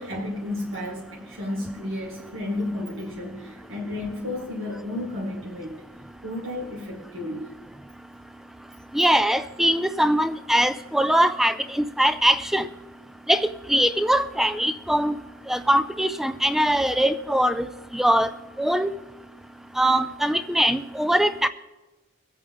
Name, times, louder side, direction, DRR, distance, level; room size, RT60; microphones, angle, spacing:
voice 1, 0.0-5.8 6.2-7.5, left 1 dB, 70° right, -4 dB, 2.0 m, -32 dB
voice 2, 8.9-12.7 13.3-15.2 15.5-17.7 17.9-18.3 18.6-18.9 19.8-21.5, right 1 dB, ahead, 12 dB, 0.3 m, -22 dB
23.0 x 8.5 x 3.5 m, 1.2 s
head